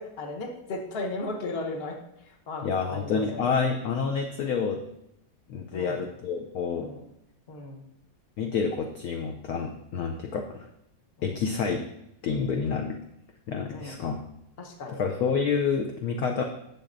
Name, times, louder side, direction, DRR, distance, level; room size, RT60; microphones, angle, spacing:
voice 1, 0.0-2.0 2.3-3.6 5.7-6.0 6.7-7.0 7.5-7.8 11.2-11.4 13.7-14.0 14.6-15.0, left 2 dB, 40° left, 3 dB, 1.0 m, -36 dB
voice 2, 2.6-4.8 5.5-6.9 8.4-10.7 11.2-11.8 12.2-13.0 13.5-14.2 14.9-16.4, left 5 dB, 65° left, 3 dB, 0.9 m, -28 dB
10.5 x 7.6 x 2.6 m, 0.80 s
omnidirectional pair, 2.1 m